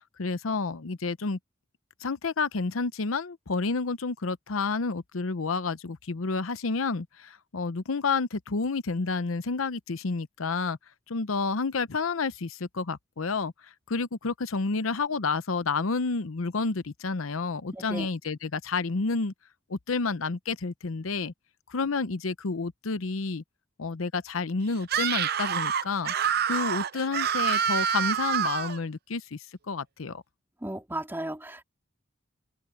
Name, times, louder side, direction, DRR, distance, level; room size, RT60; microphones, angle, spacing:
voice 1, 0.2-1.4 2.0-10.8 11.1-13.5 13.9-19.3 19.7-21.3 21.7-23.4 23.8-26.1 26.4-29.4 29.7-30.2, left 4 dB, 90° left, 0.8 m, -30 dB
voice 2, 17.7-18.1 30.6-31.6, right 1 dB, 10° right, 2.8 m, -35 dB
Screaming, 24.8-28.8, right 8 dB, 50° right, 0.6 m, -27 dB
open air
head